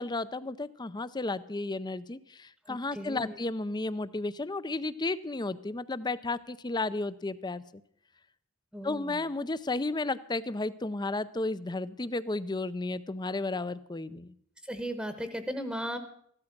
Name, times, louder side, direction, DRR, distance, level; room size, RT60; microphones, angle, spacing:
voice 1, 0.0-7.6 8.8-14.3, left 2 dB, 20° left, 16 dB, 0.6 m, -33 dB
voice 2, 2.7-3.3 8.7-9.2 14.6-16.0, equal, 5° right, 9 dB, 1.1 m, -36 dB
15.0 x 12.5 x 5.9 m, 0.68 s
head